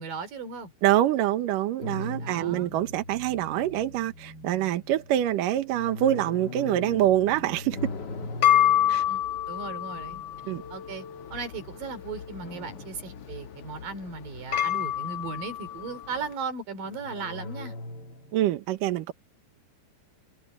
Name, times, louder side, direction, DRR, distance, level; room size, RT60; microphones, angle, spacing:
voice 1, 0.0-0.7 2.2-2.7 9.1-9.2 9.5-10.2 10.7-11.0 11.3-17.7, right 4 dB, 50° right, 4.8 m, -37 dB
voice 2, 0.8-7.8 8.9-9.0 10.4-10.6 18.3-19.1, right 12 dB, 70° right, 2.1 m, -25 dB
sound 1, 1.8-11.2 12.4-14.0 14.4-15.5 16.8-18.5, left 2 dB, 60° left, 1.1 m, -41 dB
sound 2, 7.8-16.3, left 11 dB, 85° left, 1.4 m, -29 dB
omnidirectional pair, 5.2 m